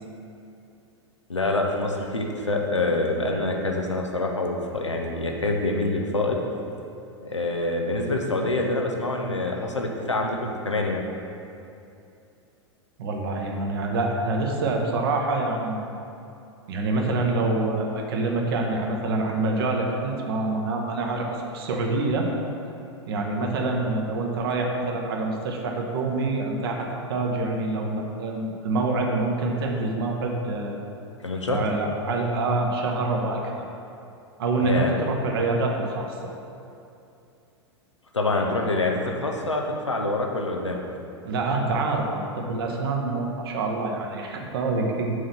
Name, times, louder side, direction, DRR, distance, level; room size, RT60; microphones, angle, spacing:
voice 1, 1.3-6.4 7.2-11.0 31.2-31.6 34.6-34.9 38.1-40.8, left 2 dB, 80° left, 1 dB, 0.8 m, -26 dB
voice 2, 13.0-15.8 16.7-22.3 23.1-30.8 31.5-33.7 34.4-36.2 41.2-45.1, right 2 dB, 55° right, 1 dB, 0.9 m, -26 dB
6.2 x 3.8 x 5.9 m, 2.7 s
figure-of-eight pair, 90°, 15 cm